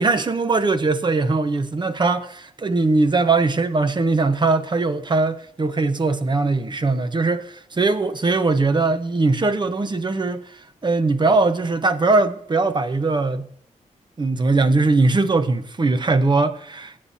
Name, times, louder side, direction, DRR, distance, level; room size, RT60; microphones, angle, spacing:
voice 1, 0.0-13.5 14.2-17.0, right 3 dB, 35° right, 0.9 m, -20 dB
18.0 x 8.7 x 2.8 m
wide cardioid pair, 105°, 13 cm